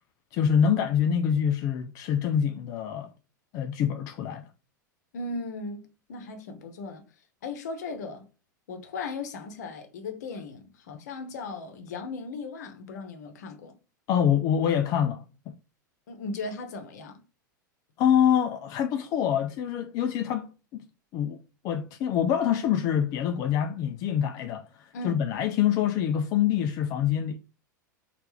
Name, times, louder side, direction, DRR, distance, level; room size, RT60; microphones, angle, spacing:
voice 1, 0.3-3.1 3.5-4.5 14.1-15.5 18.0-20.8 21.1-21.4 21.6-24.7 25.0-27.4, left 9 dB, 35° left, 0.3 m, -25 dB
voice 2, 5.1-7.0 7.4-8.2 8.7-13.8 16.1-17.2 24.9-25.2, left 3 dB, 60° left, 0.8 m, -37 dB
3.2 x 2.4 x 3.1 m
figure-of-eight pair, 90°, 10 cm